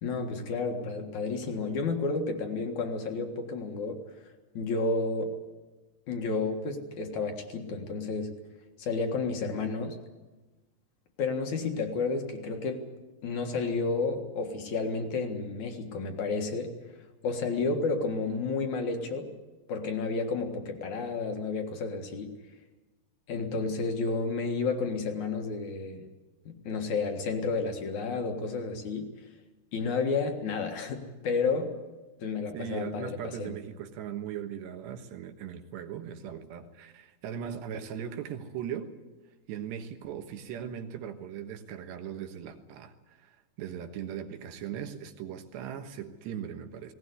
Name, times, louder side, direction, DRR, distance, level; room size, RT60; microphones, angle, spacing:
voice 1, 0.0-4.0 4.5-5.3 6.1-8.3 8.8-10.0 11.2-12.9 13.2-19.3 19.7-22.3 23.3-26.1 26.5-29.1 29.7-31.8 32.2-33.6, left 4 dB, 55° left, 4 dB, 2.5 m, -31 dB
voice 2, 32.5-38.9 39.5-46.9, right 8 dB, 75° right, 7 dB, 3.5 m, -39 dB
19.5 x 18.0 x 9.5 m, 1.2 s
omnidirectional pair, 5.1 m